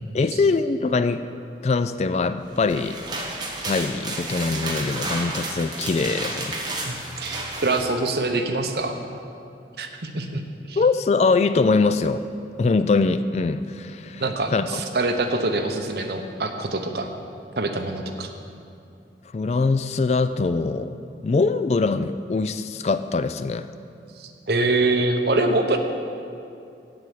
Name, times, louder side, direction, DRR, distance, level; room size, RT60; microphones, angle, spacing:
voice 1, 0.1-1.3 1.6-3.0 3.6-6.6 10.8-12.2 12.6-14.2 14.5-14.8 19.3-21.0 21.2-23.7, left 4 dB, 35° left, 12 dB, 0.3 m, -22 dB
sound 1, 2.5-7.9, right 2 dB, 25° right, 1.2 m, -31 dB
voice 2, 6.8-9.0 9.8-10.8 14.2-17.1 17.6-18.3 24.2-25.8, right 2 dB, 65° right, 5 dB, 0.9 m, -25 dB
7.9 x 7.6 x 8.5 m, 2.6 s
head